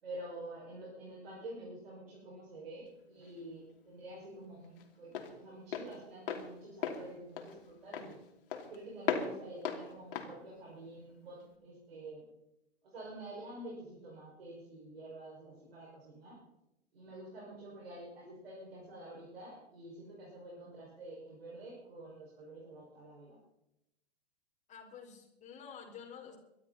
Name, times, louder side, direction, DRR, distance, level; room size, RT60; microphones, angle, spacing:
voice 1, 0.0-8.2 8.6-12.2 12.8-16.4 16.9-23.4, right 1 dB, 65° right, -4 dB, 6.0 m, -48 dB
Walk footsteps, 2.9-11.6, left 7 dB, 60° left, 2.8 m, -40 dB
voice 2, 24.7-26.4, left 7 dB, 20° left, 1 dB, 4.5 m, -50 dB
22.5 x 12.5 x 4.3 m, 0.88 s
figure-of-eight pair, 105°, 32 cm